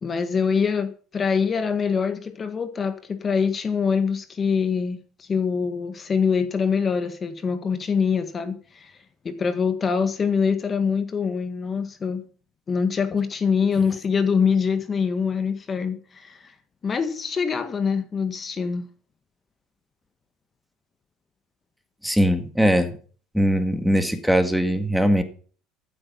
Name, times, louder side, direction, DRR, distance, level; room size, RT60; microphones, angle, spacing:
voice 1, 0.0-9.0 9.2-12.2 12.7-16.5 16.8-18.9, left 6 dB, 30° left, 1.7 m, -24 dB
voice 2, 22.0-23.0 23.3-25.2, equal, ahead, 2.0 m, -20 dB
14.5 x 8.7 x 5.6 m
supercardioid pair, 95°, 0 cm